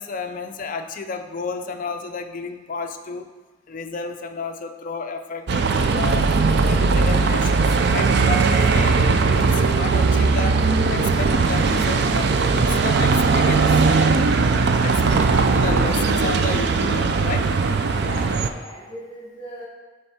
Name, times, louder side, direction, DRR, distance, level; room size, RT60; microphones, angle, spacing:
voice 1, 0.0-3.3 3.7-6.2 6.6-10.6 10.9-13.9 14.8-17.5, left 4 dB, 40° left, 6 dB, 0.4 m, -32 dB
Bus, 5.5-18.5, right 4 dB, 55° right, 0.4 m, -19 dB
voice 2, 14.8-15.2 17.9-19.7, left 1 dB, 25° left, -4 dB, 2.2 m, -38 dB
7.6 x 3.4 x 5.7 m, 1.2 s
head